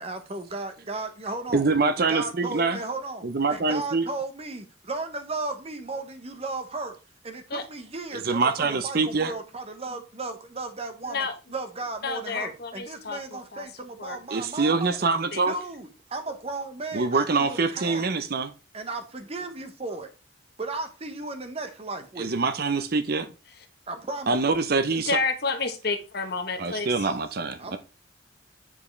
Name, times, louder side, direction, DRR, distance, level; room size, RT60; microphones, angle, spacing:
voice 1, 0.0-1.7 2.0-7.0 7.2-15.0 15.5-18.3 18.7-20.1 20.6-22.4 23.9-24.6 27.6-27.8, right 3 dB, 30° right, 1.0 m, -35 dB
voice 2, 1.5-2.8 3.2-4.1 8.2-9.3 14.3-15.5 16.9-18.5 22.2-23.3 24.3-25.1 26.6-27.6, right 4 dB, 50° right, 0.7 m, -24 dB
voice 3, 12.0-13.7 14.0-14.2 15.3-15.4 24.9-27.1, left 4 dB, 55° left, 1.0 m, -30 dB
7.3 x 4.7 x 3.2 m
head